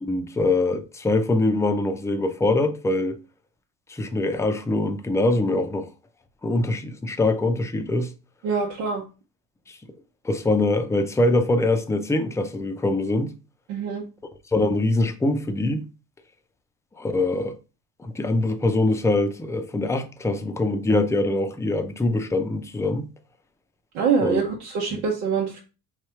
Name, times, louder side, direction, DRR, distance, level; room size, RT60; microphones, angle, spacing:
voice 1, 0.0-3.2 3.9-5.9 6.4-8.1 9.7-9.8 10.2-13.3 14.5-15.8 17.0-17.5 18.0-23.1 24.2-24.4 24.9-25.0, left 2 dB, 10° left, 0.4 m, -23 dB
voice 2, 8.4-9.0 13.7-14.0 23.9-25.6, right 5 dB, 90° right, 1.0 m, -24 dB
3.2 x 2.4 x 4.4 m
supercardioid pair, 100°, 38 cm